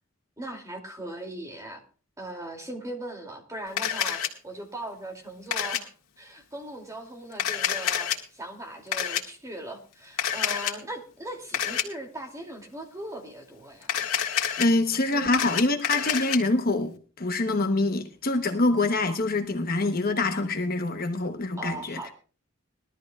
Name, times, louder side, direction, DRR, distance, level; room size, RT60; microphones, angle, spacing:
voice 1, 0.4-1.8 2.2-14.1 15.1-15.3 21.6-22.1, right 1 dB, 15° right, 2.6 m, -39 dB
Camera, 3.8-4.3 5.5-5.8 7.3-8.2 8.9-9.2 10.2-10.7 11.5-11.8 13.8-14.7 15.1-16.4, left 9 dB, 85° left, 2.0 m, -27 dB
voice 2, 14.6-22.0, left 2 dB, 45° left, 1.0 m, -25 dB
21.0 x 13.0 x 2.4 m
head